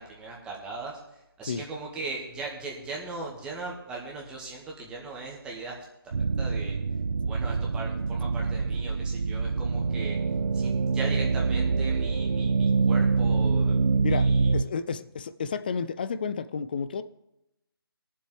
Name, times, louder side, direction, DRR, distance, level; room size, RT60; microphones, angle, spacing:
voice 1, 0.0-5.8 6.0-6.8 7.3-10.2 10.5-14.5, right 3 dB, 5° right, -3 dB, 1.7 m, -39 dB
sound 1, 6.1-14.6, right 4 dB, 60° right, 0.5 m, -25 dB
voice 2, 14.0-17.0, left 6 dB, 25° left, 13 dB, 0.3 m, -31 dB
20.5 x 7.5 x 3.4 m, 0.88 s
figure-of-eight pair, 155°, 13 cm